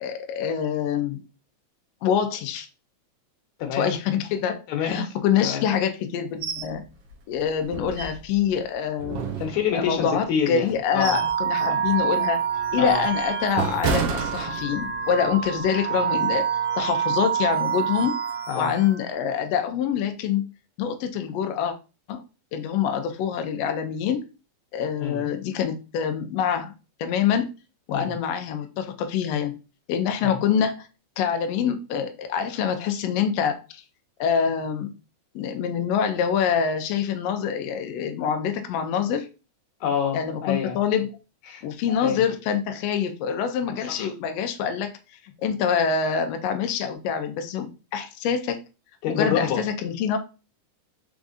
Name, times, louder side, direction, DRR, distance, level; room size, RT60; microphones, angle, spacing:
voice 1, 0.0-1.2 2.0-2.7 3.7-6.8 7.3-9.2 9.7-12.4 12.7-16.5 16.8-18.2 18.5-20.4 20.8-21.7 22.1-22.2 22.5-24.2 24.7-26.7 27.0-27.5 27.9-29.6 29.9-30.9 31.2-33.8 34.2-34.9 35.3-39.3 40.1-41.2 41.6-44.9 45.2-48.6 49.1-50.2, left 7 dB, 90° left, 1.4 m, -25 dB
voice 2, 3.6-3.9 4.7-5.7 9.4-11.3 11.6-11.8 12.8-13.1 18.5-18.8 25.0-25.3 27.9-28.1 30.2-30.4 39.8-40.8 41.5-42.2 43.9-44.1 49.0-49.6, left 7 dB, 70° left, 2.1 m, -28 dB
sound 1, 6.4-6.7 7.1-7.2 7.7-8.5 9.0-10.0 10.6-11.4 11.8-12.0 12.6-15.0 15.4-15.6, right 5 dB, 85° right, 1.3 m, -30 dB
sound 2, 11.1-19.1, right 8 dB, 70° right, 0.9 m, -27 dB
5.0 x 3.6 x 2.5 m
omnidirectional pair, 3.6 m